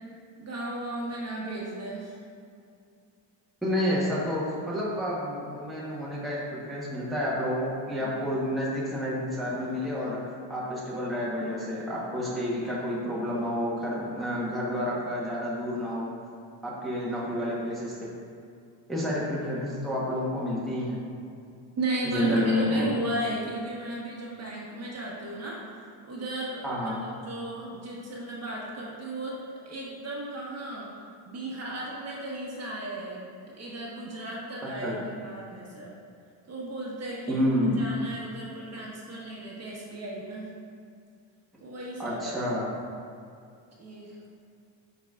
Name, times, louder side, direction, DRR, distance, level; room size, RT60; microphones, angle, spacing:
voice 1, 0.4-2.2 8.0-8.3 21.7-30.9 31.2-35.9 36.5-40.5 41.6-42.4 43.8-44.1, right 1 dB, 30° right, -4 dB, 1.2 m, -35 dB
voice 2, 3.6-10.2 10.5-16.1 16.6-18.1 18.9-21.0 22.0-22.9 26.6-27.0 34.7-34.9 37.3-37.8 42.0-42.7, left 1 dB, ahead, -7 dB, 1.1 m, -29 dB
10.0 x 4.0 x 2.4 m, 2.4 s
cardioid pair, 120°, 47 cm